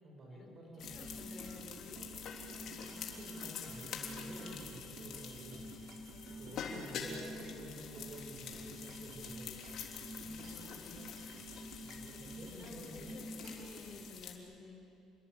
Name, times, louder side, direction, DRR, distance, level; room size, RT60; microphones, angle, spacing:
voice 1, 0.0-1.2 2.5-5.8 6.3-9.7 11.8-13.3, right 1 dB, 40° right, 1 dB, 7.6 m, -51 dB
sound 1, 0.8-14.3, left 7 dB, 60° left, 3.5 m, -47 dB
voice 2, 0.8-2.1 6.4-6.9 10.2-11.4 12.5-14.8, left 3 dB, 30° left, -1 dB, 6.1 m, -54 dB
sound 2, 0.8-14.0, right 1 dB, 60° right, 4.3 m, -49 dB
29.5 x 21.5 x 8.6 m, 2.7 s
cardioid pair, 115°, 0 cm